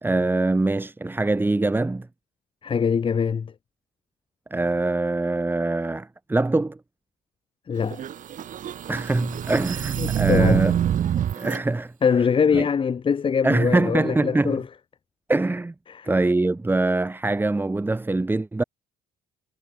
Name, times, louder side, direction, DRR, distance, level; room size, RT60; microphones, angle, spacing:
voice 1, 0.0-2.1 4.5-6.8 8.9-10.8 11.4-11.9 12.5-12.7 13.4-14.6 15.3-15.7 16.0-18.6, right 2 dB, 10° right, 1.6 m, -23 dB
voice 2, 2.6-3.5 7.7-8.0 10.0-10.6 12.0-14.7 15.9-16.1, left 6 dB, 30° left, 1.0 m, -23 dB
sound 1, 7.8-11.6, right 10 dB, 50° right, 1.5 m, -25 dB
cardioid pair, 110°, 17 cm